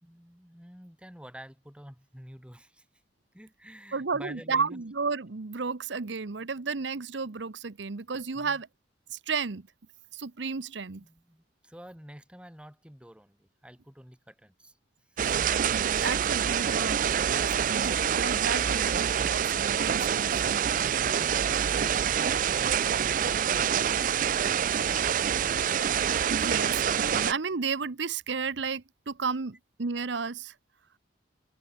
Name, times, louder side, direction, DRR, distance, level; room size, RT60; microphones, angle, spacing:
voice 1, 0.0-2.9 3.3-4.8 8.3-8.6 11.0-14.8 15.1-15.4 21.1-25.5, equal, 5° right, 2.8 m, -49 dB
voice 2, 3.9-8.7 9.1-9.7 10.1-11.0 15.7-17.0 17.7-20.6 25.9-30.5, right 5 dB, 75° right, 0.8 m, -33 dB
sound 1, 15.2-27.3, right 8 dB, 45° right, 0.4 m, -26 dB
open air
head